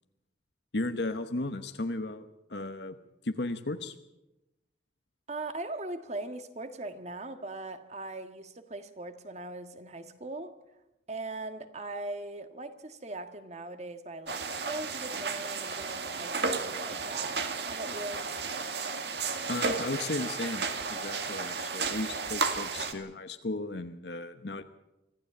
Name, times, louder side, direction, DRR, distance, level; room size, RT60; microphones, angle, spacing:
voice 1, 0.7-3.0 3.2-3.9 19.5-24.6, left 2 dB, 65° left, 8 dB, 1.1 m, -35 dB
voice 2, 5.3-10.5 11.1-18.2, right 2 dB, 40° right, 9 dB, 1.7 m, -40 dB
sound 1, 14.3-22.9, right 4 dB, 65° right, 2.1 m, -33 dB
25.0 x 15.0 x 8.6 m, 0.96 s
head